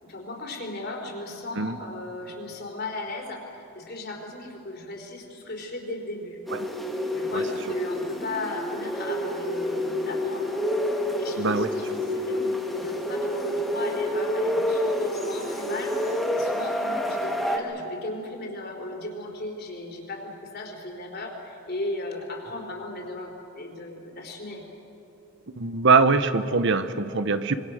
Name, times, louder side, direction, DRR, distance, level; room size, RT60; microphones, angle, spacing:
voice 1, 0.0-6.4 7.1-10.5 11.2-24.6, left 2 dB, 45° left, 1 dB, 4.1 m, -36 dB
sound 1, 6.5-17.6, left 1 dB, ahead, 2.2 m, -28 dB
voice 2, 11.4-11.7 25.6-27.6, right 4 dB, 55° right, 11 dB, 0.9 m, -22 dB
26.0 x 23.5 x 6.5 m, 3.0 s
head